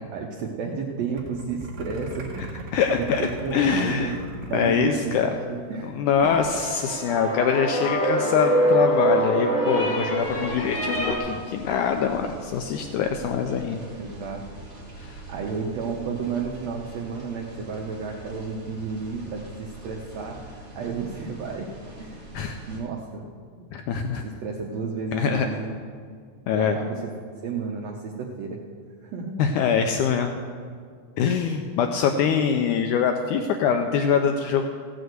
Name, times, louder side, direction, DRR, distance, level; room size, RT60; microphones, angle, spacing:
voice 1, 0.0-2.7 3.0-4.2 4.4-5.9 6.2-6.3 13.9-14.4 15.3-21.7 22.0-22.3 22.7-23.2 24.2-25.7 26.5-27.1 27.4-28.6 29.0-29.5, right 5 dB, 85° right, 0 dB, 1.4 m, -32 dB
sound 1, 1.1-5.3 5.6-5.7 5.9-6.2, right 2 dB, 55° right, 3.1 m, -39 dB
voice 2, 2.4-5.3 5.9-13.9 15.0-15.2 22.3-22.6 23.7-24.3 25.1-25.5 26.5-26.8 29.4-30.3 31.2-34.7, left 6 dB, 85° left, 5 dB, 1.8 m, -24 dB
sound 2, 6.1-11.2, right 1 dB, 20° left, 1.3 m, -25 dB
sound 3, 10.2-22.8, right 2 dB, 5° left, 3.8 m, -43 dB
16.0 x 6.3 x 7.9 m, 2.1 s
omnidirectional pair, 4.3 m